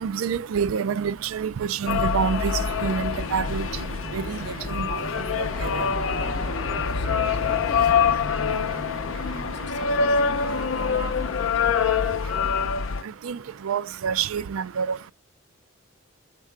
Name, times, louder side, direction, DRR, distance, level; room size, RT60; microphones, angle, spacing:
voice 1, 0.0-3.7 4.1-4.4 4.7-5.0 5.8-5.9 13.2-13.4 13.6-15.1, right 7 dB, 90° right, 0.4 m, -27 dB
sound 1, 1.8-11.1, right 1 dB, 30° right, 0.7 m, -41 dB
sound 2, 1.9-13.0, left 6 dB, 80° left, 0.5 m, -25 dB
voice 2, 6.9-8.3 9.3-11.6, left 3 dB, 55° left, 0.9 m, -40 dB
6.5 x 4.7 x 3.4 m
head